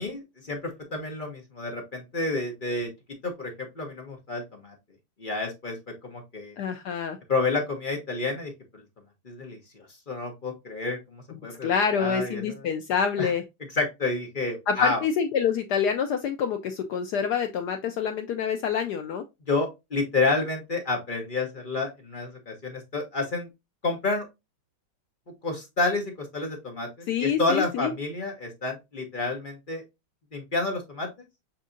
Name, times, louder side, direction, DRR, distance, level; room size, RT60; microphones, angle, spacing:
voice 1, 0.0-2.9 3.2-4.7 5.2-6.5 7.3-8.8 9.2-12.4 13.2-13.3 13.8-15.0 19.5-23.5 23.8-24.3 25.4-29.8 30.3-31.1, left 3 dB, 40° left, 2 dB, 0.7 m, -30 dB
voice 2, 6.6-7.2 11.3-13.4 14.7-19.2 27.1-27.9, left 7 dB, 75° left, 6 dB, 0.9 m, -27 dB
7.2 x 2.7 x 2.5 m, 0.22 s
omnidirectional pair, 2.2 m